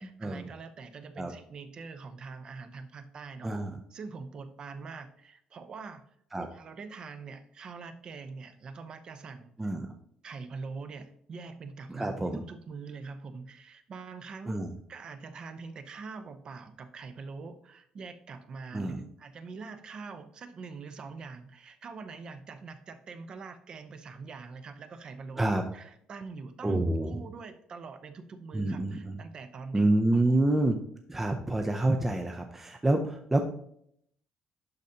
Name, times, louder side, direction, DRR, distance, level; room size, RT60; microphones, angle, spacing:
voice 1, 0.0-3.5 3.9-6.0 6.4-9.7 10.2-14.6 14.9-29.9 30.1-30.6, right 4 dB, 40° right, 9 dB, 0.8 m, -44 dB
voice 2, 3.4-3.8 6.3-6.5 9.6-9.9 11.9-12.4 14.5-14.7 18.7-19.0 25.4-25.6 26.6-27.2 28.5-29.2 29.7-30.8 31.1-33.4, right 2 dB, 10° right, 4 dB, 0.5 m, -27 dB
11.5 x 4.0 x 2.8 m, 0.70 s
cardioid pair, 145°, 2 cm